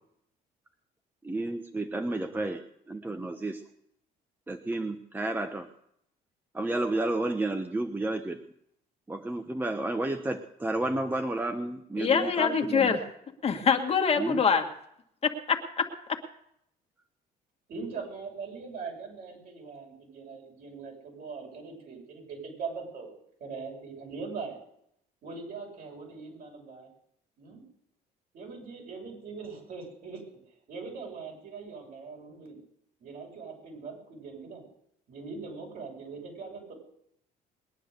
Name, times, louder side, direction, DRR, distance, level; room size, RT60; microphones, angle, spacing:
voice 1, 1.2-2.6 2.9-3.6 4.5-5.7 6.5-8.4 9.1-13.0 14.2-14.4, right 2 dB, 10° right, 7 dB, 0.9 m, -31 dB
voice 2, 12.0-13.1 13.4-14.7 15.2-16.2, left 6 dB, 35° left, 4 dB, 1.8 m, -25 dB
voice 3, 17.7-23.1 23.4-24.6 25.2-26.9 27.4-27.6 28.3-30.2 30.7-32.6 33.0-34.7 35.1-36.7, right 4 dB, 60° right, 0 dB, 7.0 m, -41 dB
21.0 x 9.9 x 6.7 m, 0.74 s
cardioid pair, 110°, 17 cm